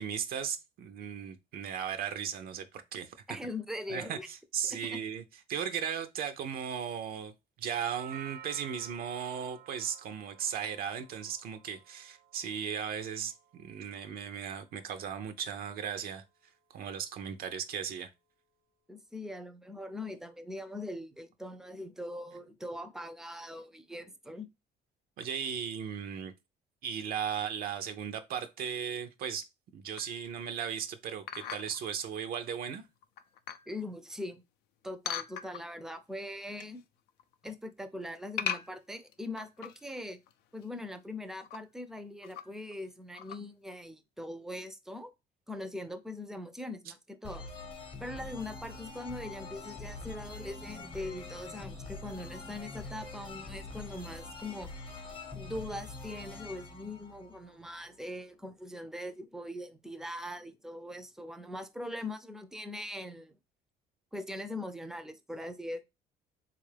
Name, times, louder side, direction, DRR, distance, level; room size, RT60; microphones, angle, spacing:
voice 1, 0.0-3.4 3.9-5.2 5.5-7.3 7.6-16.2 16.7-18.1 25.2-26.3 26.8-29.5 29.7-32.8, right 8 dB, 65° right, 0.5 m, -36 dB
voice 2, 3.3-4.3 4.6-5.0 18.9-24.5 33.7-34.4 34.8-36.8 37.4-40.2 40.5-45.1 45.5-47.5 48.0-54.7 55.3-63.4 64.1-65.8, left 1 dB, 5° right, 0.4 m, -41 dB
Doorbell, 7.8-15.9, right 10 dB, 80° right, 0.9 m, -53 dB
sound 1, 30.0-30.3 31.3-31.9 32.5-32.6 33.0-33.7 35.1-35.9 36.3-36.8 37.1-37.5 38.4-39.9 40.3-40.4 40.6-40.7 41.3-41.6 42.2-42.7 43.1-43.4, left 9 dB, 80° left, 0.4 m, -39 dB
sound 2, 47.2-57.8, left 3 dB, 30° left, 0.8 m, -44 dB
3.6 x 2.4 x 3.2 m
cardioid pair, 110°, 17 cm